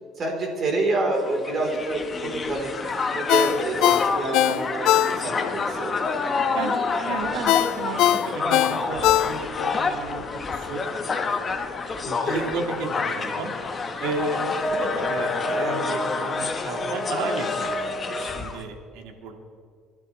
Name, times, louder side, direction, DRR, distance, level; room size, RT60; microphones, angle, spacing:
voice 1, 0.2-5.9 10.1-10.3 14.8-15.1, right 2 dB, 35° right, 0 dB, 3.9 m, -28 dB
Crowd, 1.2-18.6, left 4 dB, 25° left, 1.2 m, -28 dB
Ringtone, 3.3-5.5 5.9-6.0 7.5-9.7 10.1-10.2, left 13 dB, 70° left, 0.5 m, -21 dB
voice 2, 7.1-10.2 10.5-10.9 12.0-13.6 14.0-19.4, right 4 dB, 85° right, 3 dB, 2.1 m, -33 dB
28.5 x 12.0 x 3.3 m, 2.1 s
cardioid pair, 145°, 0 cm